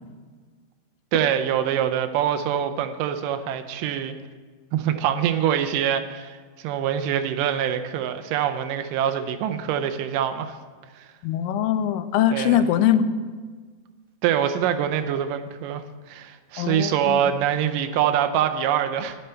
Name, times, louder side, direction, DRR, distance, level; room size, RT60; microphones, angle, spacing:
voice 1, 1.1-4.2 4.7-10.6 11.0-11.1 12.3-12.6 14.2-19.2, right 9 dB, 80° right, 8 dB, 2.1 m, -24 dB
voice 2, 11.2-13.1 16.6-17.2, left 10 dB, 85° left, 11 dB, 2.2 m, -22 dB
10.0 x 8.7 x 4.4 m, 1.5 s
omnidirectional pair, 3.9 m